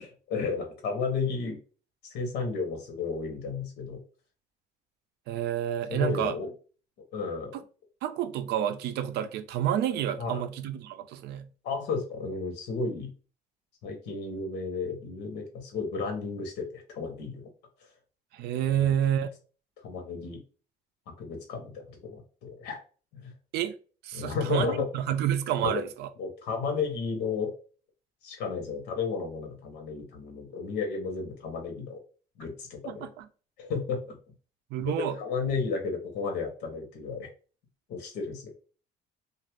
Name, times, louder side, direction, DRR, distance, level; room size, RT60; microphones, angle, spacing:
voice 1, 0.0-1.6 2.0-4.0 5.9-6.5 7.1-7.5 10.2-10.4 11.6-13.1 13.8-17.4 18.8-18.9 19.8-20.4 21.2-22.8 23.1-23.3 24.1-24.9 25.6-25.8 26.2-27.5 28.2-32.0 32.4-33.1 33.6-34.2 35.2-37.3 37.9-38.6, left 4 dB, 80° left, 0.9 m, -33 dB
voice 2, 5.3-6.3 7.5-7.6 8.0-11.5 18.3-19.3 23.5-23.7 24.0-26.1 32.8-33.3 34.7-35.2, right 10 dB, 75° right, 0.4 m, -29 dB
2.6 x 2.4 x 3.2 m
cardioid pair, 110°, 17 cm